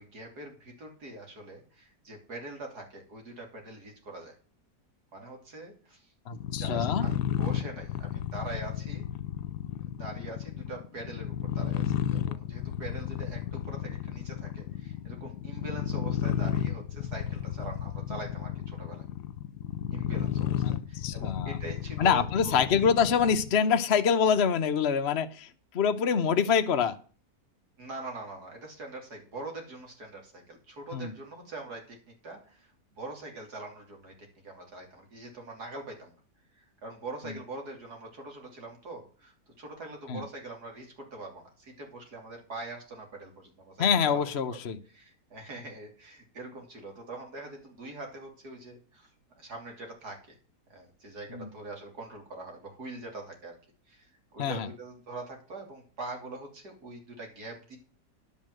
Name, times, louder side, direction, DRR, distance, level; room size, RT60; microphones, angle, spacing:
voice 1, 0.0-4.3 5.1-6.1 6.6-9.1 9.9-19.0 19.9-22.8 27.8-32.0 32.2-36.1 36.6-44.6 44.9-49.1 49.4-50.4 50.7-53.6 53.9-57.8, right 2 dB, 70° right, 2 dB, 3.6 m, -43 dB
sound 1, 6.3-23.6, left 10 dB, 80° left, 1.2 m, -33 dB
voice 2, 6.3-7.1 20.6-21.6 22.0-27.0 30.9-31.1 37.3-37.4 40.1-40.2 43.8-44.8 51.3-51.5 54.4-54.7, left 7 dB, 50° left, 8 dB, 0.9 m, -26 dB
11.5 x 5.6 x 7.7 m, 0.40 s
omnidirectional pair, 1.7 m